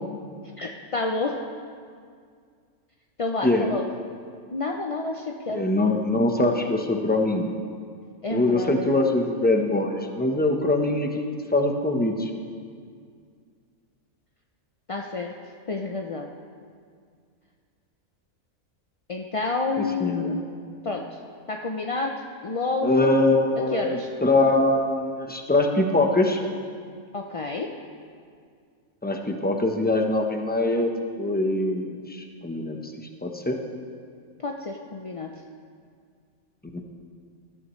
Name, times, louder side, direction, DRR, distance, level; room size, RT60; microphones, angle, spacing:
voice 1, 0.6-1.3 3.2-3.8 4.5-5.7 8.2-9.0 14.9-15.3 15.7-16.3 19.1-20.5 20.8-21.2 21.5-22.1 22.4-23.1 23.7-24.1 27.1-27.7 34.4-35.3, left 3 dB, 45° left, 1 dB, 0.4 m, -29 dB
voice 2, 5.5-7.5 8.3-11.3 11.5-12.3 20.0-20.4 22.8-26.4 29.0-30.9 31.2-32.9 33.2-33.6 36.7-36.8, left 2 dB, 10° left, 3 dB, 0.8 m, -23 dB
20.5 x 12.5 x 3.2 m, 2.1 s
omnidirectional pair, 1.5 m